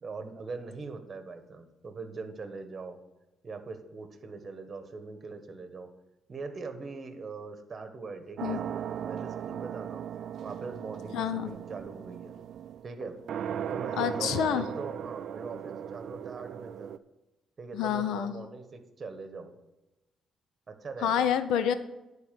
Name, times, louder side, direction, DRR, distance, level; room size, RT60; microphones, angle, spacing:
voice 1, 0.0-3.0 3.4-5.9 6.3-10.0 10.4-12.4 12.8-13.2 13.7-16.9 17.6-19.5 20.7-21.3, right 4 dB, 40° right, 8 dB, 1.3 m, -41 dB
sound 1, 8.4-17.0, right 9 dB, 65° right, 0.4 m, -38 dB
voice 2, 11.1-11.5 14.0-14.7 17.7-18.3 21.0-21.7, left 9 dB, 85° left, 12 dB, 0.6 m, -28 dB
10.5 x 4.1 x 7.6 m, 0.98 s
cardioid pair, 90°, 0 cm